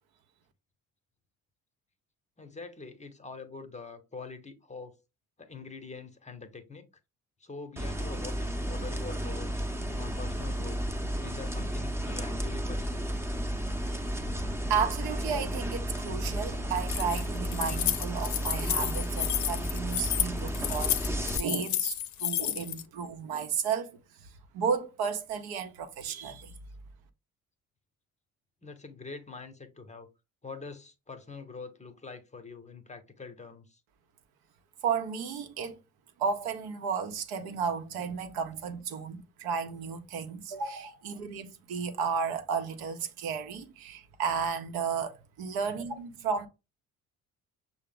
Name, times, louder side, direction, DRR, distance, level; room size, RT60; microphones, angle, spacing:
voice 1, 2.4-4.9 5.4-6.9 7.4-9.7 10.0-10.8 11.2-13.1 28.6-30.1 30.4-33.8, left 4 dB, 15° left, 0.9 m, -44 dB
sound 1, 7.8-21.4, equal, 5° right, 0.7 m, -33 dB
voice 2, 14.7-21.0 21.3-24.0 24.5-26.5 34.8-35.8 36.2-46.5, right 6 dB, 60° right, 0.9 m, -33 dB
Keys jangling, 16.8-22.8, left 12 dB, 45° left, 0.6 m, -31 dB
6.5 x 2.2 x 3.6 m
figure-of-eight pair, 50°, 42 cm